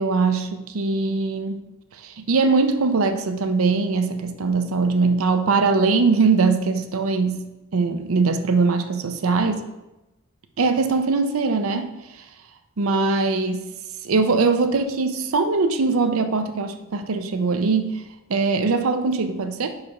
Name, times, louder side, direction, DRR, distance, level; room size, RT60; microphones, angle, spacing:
voice 1, 0.0-7.4 7.7-9.6 10.6-12.2 12.8-13.7 14.0-18.0 18.3-19.7, right 4 dB, 80° right, 8 dB, 0.6 m, -21 dB
5.5 x 4.8 x 4.8 m, 1.0 s
head